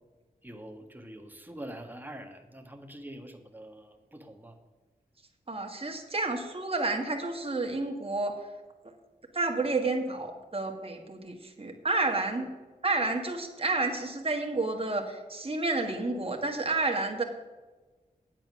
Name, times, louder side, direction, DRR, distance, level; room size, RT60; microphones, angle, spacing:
voice 1, 0.4-4.6, right 1 dB, 10° right, 4 dB, 1.5 m, -45 dB
voice 2, 5.5-8.3 9.3-12.5 12.8-17.2, right 3 dB, 40° right, 2 dB, 1.5 m, -30 dB
9.1 x 7.5 x 6.2 m, 1.2 s
cardioid pair, 40°, 15 cm